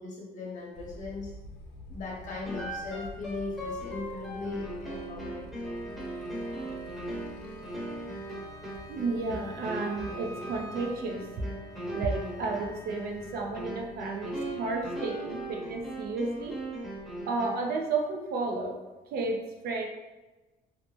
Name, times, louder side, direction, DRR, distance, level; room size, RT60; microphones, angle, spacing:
voice 1, 0.0-1.3 1.9-5.7, left 3 dB, 50° left, -3 dB, 0.9 m, -38 dB
Motorcycle, 0.7-17.2, left 1 dB, 70° left, 0.6 m, -50 dB
sound 1, 2.5-17.8, right 1 dB, ahead, 0.8 m, -39 dB
Wind instrument woodwind instrument, 5.6-13.5, equal, 20° left, 0.4 m, -49 dB
voice 2, 8.9-11.3 11.9-16.6 17.3-18.8 19.1-19.9, right 3 dB, 65° right, 1 dB, 0.5 m, -32 dB
2.7 x 2.1 x 3.0 m, 1.1 s
cardioid pair, 110°, 17 cm